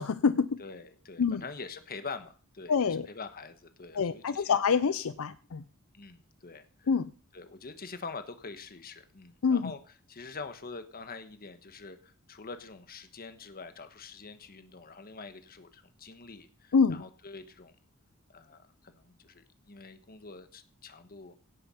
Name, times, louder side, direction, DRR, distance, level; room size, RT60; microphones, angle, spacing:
voice 1, 0.0-0.6 1.2-1.4 2.7-3.1 3.9-5.6 6.9-7.1 9.4-9.7 16.7-17.0, left 5 dB, 70° left, 13 dB, 0.5 m, -26 dB
voice 2, 0.6-4.6 5.9-6.9 7.3-9.8 10.1-17.7 18.3-21.3, left 4 dB, 45° left, 9 dB, 1.3 m, -45 dB
16.5 x 6.8 x 5.7 m, 0.40 s
head